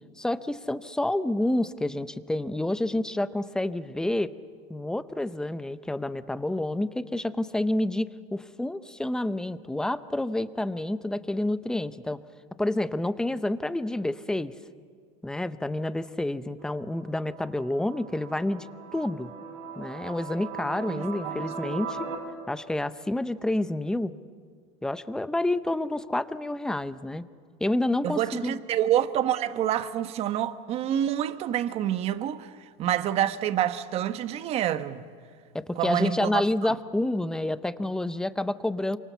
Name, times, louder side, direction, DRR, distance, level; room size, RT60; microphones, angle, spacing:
voice 1, 0.2-4.3 4.7-12.2 12.6-14.5 15.2-18.7 18.9-19.3 19.8-22.0 22.5-24.1 24.8-27.2 27.6-28.6 35.5-39.0, left 1 dB, 5° left, 0.7 m, -29 dB
sound 1, 16.6-22.2, right 5 dB, 80° right, 4.8 m, -39 dB
voice 2, 20.9-21.4 28.0-32.5 32.8-35.1 35.8-36.4, right 11 dB, 40° right, 1.2 m, -27 dB
28.5 x 24.5 x 7.0 m
supercardioid pair, 140°, 16 cm